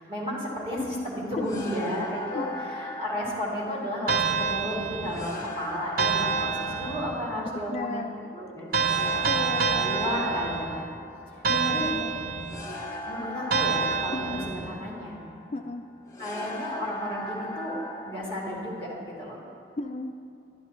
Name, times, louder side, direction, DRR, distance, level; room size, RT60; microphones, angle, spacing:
voice 1, 0.1-8.0 8.3-8.6 9.7-10.9 11.6-12.0 13.1-15.2 16.2-17.8 18.0-19.4, equal, 30° right, -7 dB, 2.4 m, -33 dB
sound 1, 1.4-19.2, left 1 dB, 15° left, 0.7 m, -39 dB
sound 2, 4.1-5.4 6.0-7.3 8.7-10.9 11.4-12.7 13.5-14.8, right 5 dB, 50° right, 0.6 m, -27 dB
voice 2, 7.7-8.3 9.3-10.3 11.5-12.2 14.1-14.5 15.5-15.8 19.8-20.1, left 2 dB, 35° left, 5 dB, 0.3 m, -34 dB
11.0 x 11.0 x 3.1 m, 2.6 s
head